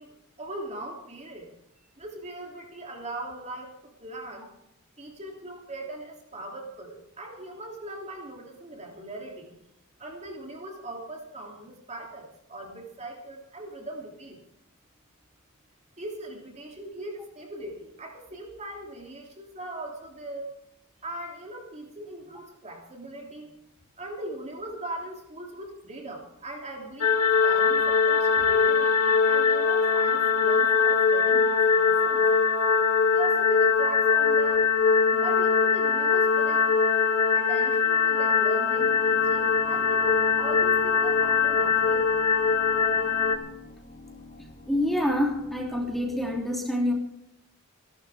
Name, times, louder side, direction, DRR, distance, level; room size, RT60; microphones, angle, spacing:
voice 1, 0.0-1.5 2.0-4.5 5.0-9.5 10.0-14.4 16.0-20.5 21.0-23.5 24.0-32.3 33.1-34.7 35.1-36.8 37.3-42.1 42.9-43.0, right 1 dB, 30° right, 1 dB, 2.9 m, -40 dB
sound 1, 27.0-43.4, left 6 dB, 75° left, 2.1 m, -22 dB
sound 2, 38.8-46.4, left 3 dB, 40° left, 2.8 m, -46 dB
voice 2, 44.7-46.9, left 1 dB, ahead, 0 dB, 3.2 m, -27 dB
29.5 x 13.0 x 3.5 m, 0.82 s
head